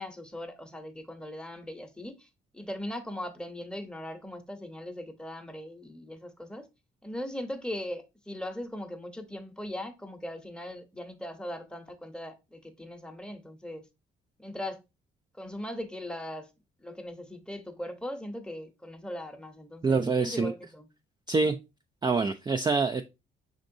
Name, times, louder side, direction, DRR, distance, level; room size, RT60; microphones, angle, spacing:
voice 1, 0.0-6.7 7.0-13.8 14.4-14.8 15.3-16.5 16.8-20.9, left 1 dB, 5° left, 0.8 m, -39 dB
voice 2, 19.8-20.5 21.3-21.6 22.0-23.0, right 4 dB, 20° right, 0.4 m, -25 dB
5.2 x 3.8 x 2.6 m
cardioid pair, 90°, 20 cm